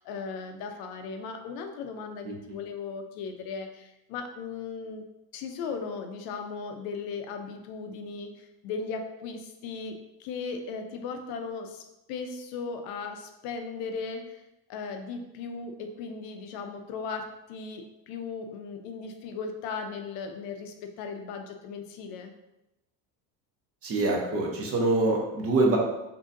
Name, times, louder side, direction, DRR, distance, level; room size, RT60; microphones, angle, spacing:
voice 1, 0.0-5.0 5.3-11.8 12.1-14.4 14.7-22.3, left 5 dB, 65° left, 5 dB, 0.6 m, -37 dB
voice 2, 2.2-2.6 23.8-25.8, right 2 dB, 35° right, 0 dB, 0.7 m, -25 dB
3.6 x 2.7 x 2.5 m, 0.93 s
cardioid pair, 125°, 39 cm